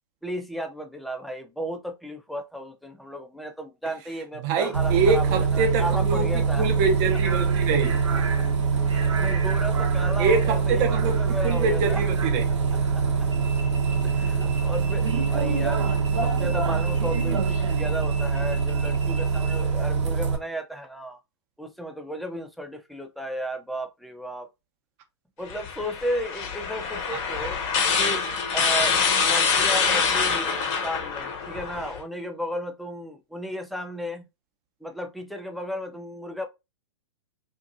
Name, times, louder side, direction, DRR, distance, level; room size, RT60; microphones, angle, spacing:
voice 1, 0.2-6.7 8.4-8.5 8.8-12.0 12.7-13.3 14.0-15.9 16.2-21.2 21.6-24.5 25.4-27.6 28.0-28.2 28.5-34.2 34.8-36.5, equal, ahead, 0.4 m, -34 dB
voice 2, 4.4-8.0 10.2-11.2 11.4-12.4, right 4 dB, 40° right, 0.8 m, -25 dB
Bus, 4.7-20.4, right 5 dB, 75° right, 0.9 m, -24 dB
sound 1, 25.5-32.0, left 5 dB, 40° left, 0.7 m, -25 dB
2.7 x 2.5 x 2.5 m
hypercardioid pair, 120°, 15 cm